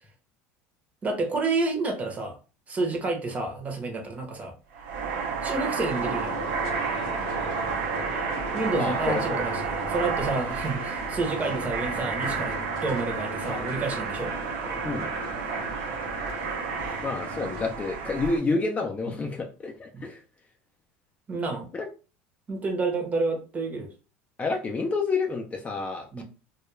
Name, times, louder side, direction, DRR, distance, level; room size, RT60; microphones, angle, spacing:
voice 1, 1.0-2.4 2.7-4.5 5.4-6.4 8.5-12.6 12.8-14.3 19.9-20.1 21.3-21.7 22.5-23.9 26.1-26.2, right 3 dB, 25° right, 3 dB, 0.7 m, -29 dB
sound 1, 4.7-18.4, right 5 dB, 85° right, 0.6 m, -31 dB
sound 2, 5.9-17.8, left 5 dB, 80° left, 0.5 m, -40 dB
voice 2, 17.0-20.2 21.7-21.9 24.4-26.2, left 3 dB, 25° left, 3 dB, 0.5 m, -29 dB
2.3 x 2.2 x 3.0 m, 0.34 s
supercardioid pair, 115°, 6 cm